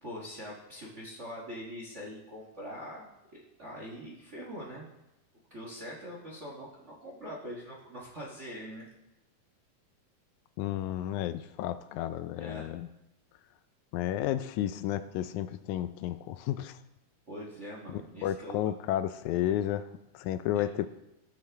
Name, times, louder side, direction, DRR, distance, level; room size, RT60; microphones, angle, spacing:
voice 1, 0.0-3.1 3.6-4.9 5.5-8.9 12.3-12.7 17.3-18.6 20.5-20.6, equal, 70° right, -3 dB, 0.6 m, -43 dB
voice 2, 10.6-12.9 13.9-16.8 17.9-19.9 20.1-20.9, left 12 dB, 85° left, 11 dB, 1.7 m, -32 dB
18.0 x 7.0 x 3.5 m, 0.95 s
omnidirectional pair, 3.9 m